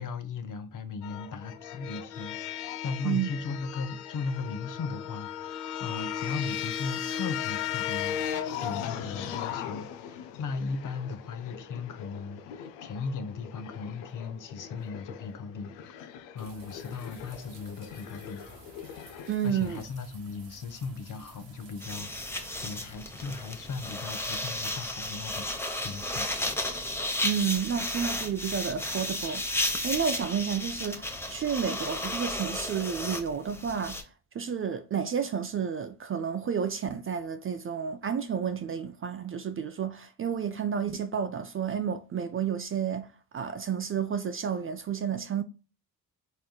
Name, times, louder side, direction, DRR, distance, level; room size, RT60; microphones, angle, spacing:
voice 1, 0.0-16.1 16.3-18.4 19.4-26.3, left 4 dB, 45° left, 0.8 m, -37 dB
sound 1, 1.0-19.3, left 9 dB, 85° left, 0.6 m, -38 dB
sound 2, 16.4-22.9, right 4 dB, 80° right, 1.5 m, -53 dB
voice 2, 19.3-19.8 27.2-29.5 29.8-34.0 34.3-45.4, right 7 dB, 30° right, 0.4 m, -31 dB
sound 3, 21.8-34.0, left 1 dB, 5° left, 0.8 m, -33 dB
4.3 x 3.6 x 2.2 m
supercardioid pair, 60°, 42 cm